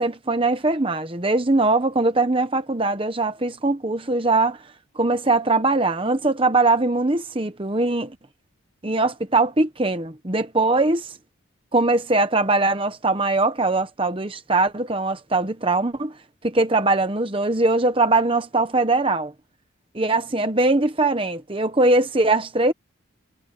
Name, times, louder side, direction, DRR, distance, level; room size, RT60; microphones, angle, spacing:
voice 1, 0.0-4.6 5.0-8.2 8.8-11.1 11.7-16.1 16.4-19.3 19.9-22.7, right 2 dB, 25° right, 1.0 m, -21 dB
head